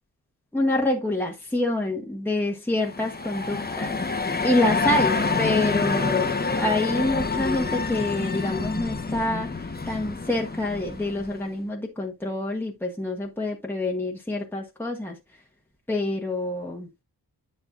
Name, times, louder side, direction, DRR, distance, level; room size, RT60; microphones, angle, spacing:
voice 1, 0.5-15.2 15.9-17.0, left 1 dB, 5° left, 1.4 m, -27 dB
sound 1, 2.8-11.5, left 4 dB, 25° left, 1.2 m, -27 dB
9.9 x 5.6 x 2.5 m
cardioid pair, 65°, 40 cm